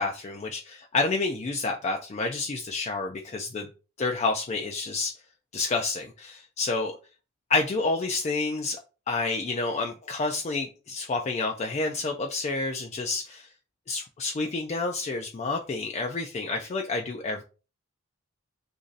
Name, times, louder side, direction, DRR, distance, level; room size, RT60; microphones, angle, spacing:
voice 1, 0.0-3.7 4.0-5.1 5.5-6.9 7.5-8.8 9.1-13.5 13.9-17.4, left 3 dB, 30° left, 2 dB, 0.3 m, -29 dB
3.0 x 2.6 x 3.8 m, 0.33 s
head